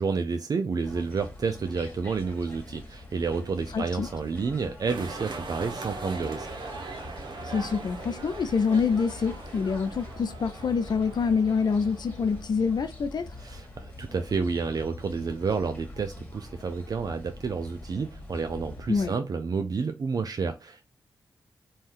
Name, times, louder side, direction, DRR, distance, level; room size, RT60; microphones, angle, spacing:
voice 1, 0.0-6.5 13.4-20.9, right 5 dB, 50° right, 0.4 m, -30 dB
sound 1, 0.8-19.1, left 1 dB, 15° left, 1.5 m, -44 dB
voice 2, 3.7-4.1 7.5-13.3 18.9-19.1, left 5 dB, 60° left, 0.6 m, -26 dB
sound 2, 4.9-13.0, right 3 dB, 65° right, 0.8 m, -41 dB
2.6 x 2.3 x 3.4 m
supercardioid pair, 45°, 8 cm